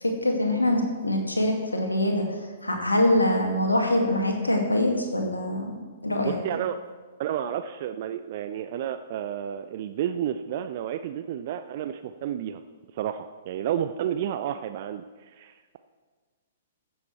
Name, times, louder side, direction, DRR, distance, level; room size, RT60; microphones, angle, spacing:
voice 1, 0.0-2.2 2.6-5.7 6.0-6.4, left 1 dB, 80° left, 2 dB, 2.0 m, -24 dB
voice 2, 6.2-6.8 7.2-12.6 12.9-15.8, right 10 dB, 45° right, 10 dB, 0.4 m, -31 dB
15.0 x 7.1 x 4.5 m, 1.4 s
figure-of-eight pair, 115°, 0 cm